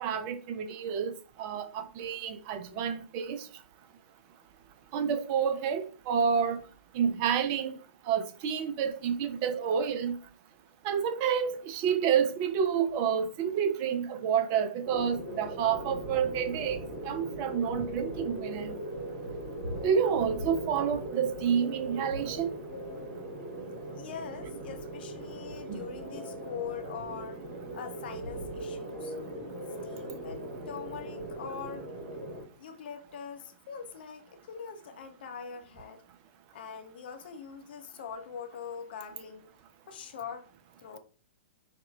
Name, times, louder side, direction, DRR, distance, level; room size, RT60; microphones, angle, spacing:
voice 1, 0.0-3.5 4.9-6.6 6.9-7.7 8.1-10.2 10.8-18.8 19.8-22.5 25.7-25.8, right 7 dB, 35° right, 0.4 m, -29 dB
sound 1, 14.8-32.4, right 1 dB, 60° right, 1.6 m, -39 dB
voice 2, 23.8-27.4 27.7-29.1 29.8-31.9 32.6-36.0 36.5-39.5 39.9-40.5 40.8-41.0, left 7 dB, 50° left, 0.6 m, -43 dB
4.7 x 2.2 x 3.2 m
figure-of-eight pair, 115°, 7 cm